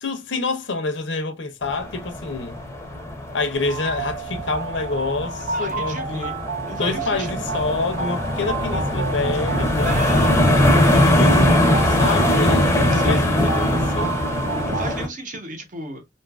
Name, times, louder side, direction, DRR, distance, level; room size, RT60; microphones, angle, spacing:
voice 1, 0.0-2.6 3.3-6.4 6.8-10.0 10.9-14.1, left 3 dB, 90° left, 0.6 m, -27 dB
sound 1, 1.6-15.1, left 1 dB, 15° left, 0.6 m, -21 dB
sound 2, 3.7-15.0, right 5 dB, 75° right, 0.6 m, -31 dB
voice 2, 5.5-6.3 6.7-7.7 9.8-10.5 12.9-13.3 14.7-16.0, right 2 dB, 45° right, 0.8 m, -34 dB
2.7 x 2.4 x 2.3 m
head